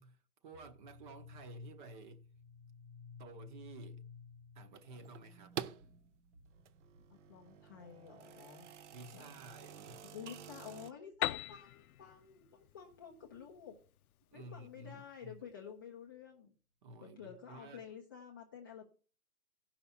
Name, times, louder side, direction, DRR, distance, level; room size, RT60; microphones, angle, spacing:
voice 1, 0.0-2.3 3.2-4.0 4.5-5.6 8.9-10.0 14.3-15.4 16.8-17.9, right 2 dB, 35° right, 0.9 m, -53 dB
sound 1, 0.5-11.8, left 5 dB, 75° right, 1.7 m, -57 dB
sound 2, 4.7-5.9 6.5-10.9, right 9 dB, 55° right, 0.6 m, -49 dB
voice 2, 7.1-8.7 9.1-9.4 10.0-13.8 14.3-16.5 17.0-18.8, left 8 dB, 15° left, 0.4 m, -51 dB
Piano, 11.2-14.9, left 13 dB, 75° left, 0.6 m, -41 dB
15.5 x 5.8 x 4.2 m
hypercardioid pair, 150°, 44 cm